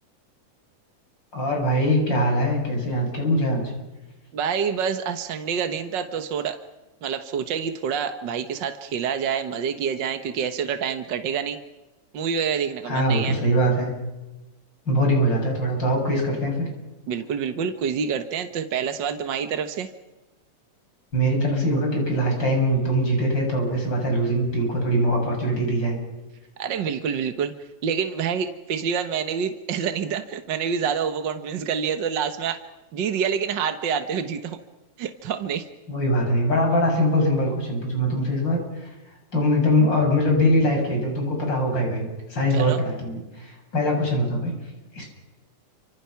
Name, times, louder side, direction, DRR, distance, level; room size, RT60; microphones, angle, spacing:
voice 1, 1.3-3.6 12.9-13.9 14.9-16.7 21.1-26.0 35.9-38.9 39.3-44.5 44.9-45.1, equal, 35° left, 1 dB, 7.8 m, -22 dB
voice 2, 4.3-6.6 7.0-11.6 12.1-13.4 17.1-19.9 26.6-27.5 27.8-32.6 32.9-34.6 35.0-35.7 42.5-42.8, right 7 dB, 55° right, 8 dB, 1.3 m, -27 dB
30.0 x 26.0 x 5.9 m, 1.0 s
omnidirectional pair, 3.6 m